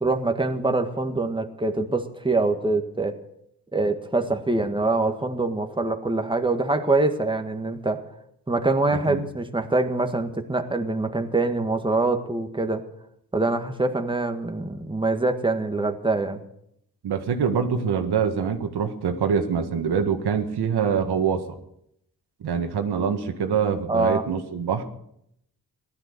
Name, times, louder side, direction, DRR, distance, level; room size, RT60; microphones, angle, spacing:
voice 1, 0.0-3.2 3.7-8.0 8.5-12.8 13.3-16.4 23.9-24.2, right 2 dB, 10° right, 5 dB, 1.8 m, -24 dB
voice 2, 17.0-21.6 22.4-24.8, right 6 dB, 80° right, 6 dB, 1.8 m, -25 dB
16.5 x 12.0 x 6.7 m, 0.75 s
cardioid pair, 75°, 39 cm